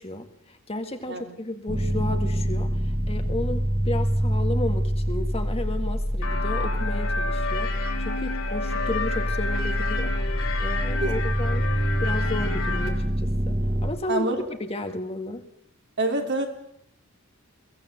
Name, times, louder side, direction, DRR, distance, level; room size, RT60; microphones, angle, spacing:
voice 1, 0.0-11.7 12.0-14.3 14.6-15.4, left 2 dB, 30° left, 6 dB, 2.0 m, -33 dB
sound 1, 1.7-13.9, equal, 25° right, 2.2 m, -26 dB
sound 2, 6.2-12.9, left 4 dB, 80° left, 5.2 m, -31 dB
voice 2, 14.1-14.4 16.0-16.5, right 2 dB, 55° right, 4 dB, 3.3 m, -25 dB
22.0 x 17.0 x 8.1 m, 0.72 s
head